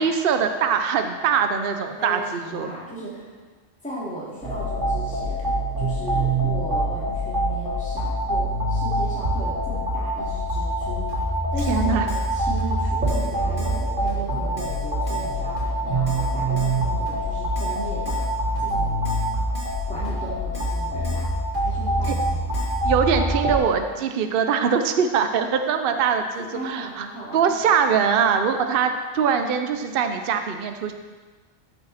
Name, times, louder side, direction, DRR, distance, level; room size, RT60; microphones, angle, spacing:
voice 1, 0.0-2.7 11.7-12.1 22.1-22.2 22.8-27.1 27.3-30.9, right 6 dB, 55° right, 7 dB, 0.8 m, -22 dB
voice 2, 2.0-3.3 3.8-11.1 11.5-18.3 18.6-19.0 19.9-21.2 21.6-22.7 26.5-27.5, right 1 dB, 5° left, -9 dB, 2.7 m, -36 dB
sound 1, 4.4-23.6, right 1 dB, 70° right, 3.2 m, -25 dB
Keyboard (musical), 11.1-11.2 11.6-11.8 12.1-12.3 12.6-12.7 13.1-13.3 13.6-13.8 14.1-14.2 14.6-14.8 15.1-15.3 15.6-15.7 16.1-16.3 16.6-16.8 17.1-17.2 17.6-17.8 18.1-18.3 18.6-18.7 19.1-19.3 19.6-19.8 20.0-20.1 20.5-20.8 21.0-21.3 21.5-21.6 22.0-22.3 22.5-22.8, equal, 40° left, 2.4 m, -40 dB
14.5 x 5.6 x 4.2 m, 1.3 s
omnidirectional pair, 1.3 m